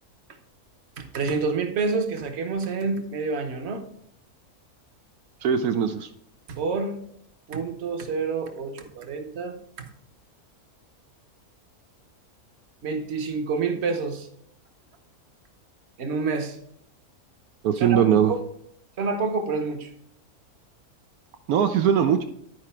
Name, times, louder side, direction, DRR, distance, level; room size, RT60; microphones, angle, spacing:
voice 1, 1.0-3.8 6.6-7.0 7.5-9.9 12.8-14.3 16.0-16.6 17.7-18.4 19.0-19.9, right 4 dB, 50° right, 6 dB, 1.2 m, -28 dB
voice 2, 5.4-6.1 17.6-18.3 21.5-22.2, right 8 dB, 80° right, 6 dB, 1.0 m, -20 dB
10.5 x 4.9 x 4.3 m, 0.71 s
omnidirectional pair, 1.6 m